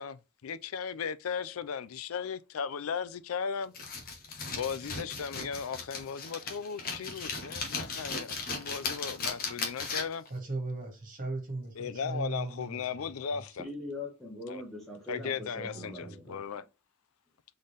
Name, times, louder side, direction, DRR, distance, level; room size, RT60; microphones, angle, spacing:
voice 1, 0.0-3.7 4.5-10.2 11.7-13.6 14.5-14.6 15.1-16.6, left 6 dB, 80° left, 0.4 m, -36 dB
sound 1, 3.7-10.3, left 4 dB, 45° left, 1.2 m, -37 dB
voice 2, 10.3-13.0 13.3-13.4 15.2-15.3 15.6-16.2, right 2 dB, 40° right, 1.9 m, -38 dB
voice 3, 13.6-16.6, left 2 dB, ahead, 1.0 m, -42 dB
4.0 x 3.9 x 3.2 m
head